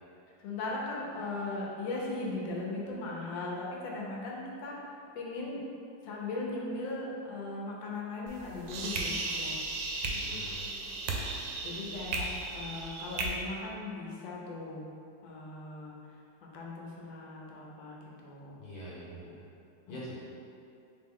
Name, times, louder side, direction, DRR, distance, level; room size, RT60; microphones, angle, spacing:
voice 1, 0.4-5.6 6.0-9.6 11.6-14.9 15.2-15.9 16.5-18.6 19.9-20.0, left 2 dB, 85° left, -3 dB, 1.4 m, -38 dB
sound 1, 8.3-13.3, right 3 dB, 90° right, 1.3 m, -35 dB
voice 2, 10.0-10.7 18.6-19.4 19.9-20.1, equal, 65° left, -8 dB, 1.7 m, -44 dB
3.7 x 3.2 x 3.6 m, 2.6 s
omnidirectional pair, 2.0 m